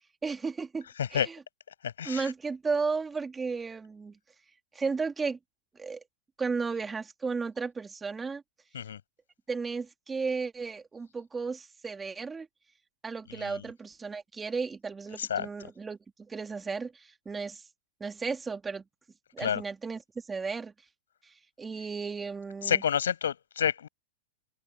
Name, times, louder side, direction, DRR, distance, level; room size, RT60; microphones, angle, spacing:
voice 1, 0.2-0.9 1.1-1.4 2.0-4.2 4.7-5.4 5.8-6.0 6.4-8.4 9.5-12.5 13.0-17.6 18.0-18.8 19.3-20.0 20.3-20.7 21.2-22.8, right 4 dB, 15° right, 2.7 m, -34 dB
voice 2, 1.8-2.3 8.7-9.0 13.4-13.6 15.2-15.5 19.4-19.6 22.6-23.9, left 8 dB, 90° left, 7.2 m, -29 dB
hypercardioid pair, 130°, 0 cm